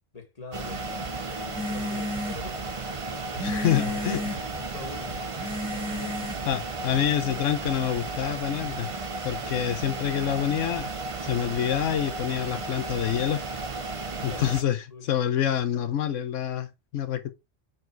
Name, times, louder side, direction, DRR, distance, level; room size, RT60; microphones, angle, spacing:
voice 1, 0.1-2.7 3.1-6.2 13.9-15.1, left 4 dB, 30° left, 2.0 m, -44 dB
sound 1, 0.5-14.6, right 3 dB, 30° right, 0.8 m, -34 dB
sound 2, 1.6-7.0, left 1 dB, 5° right, 1.7 m, -34 dB
voice 2, 3.4-4.2 6.4-8.9 9.2-10.9 11.2-13.4 14.2-17.3, left 10 dB, 90° left, 1.1 m, -27 dB
5.9 x 4.8 x 4.4 m
omnidirectional pair, 1.3 m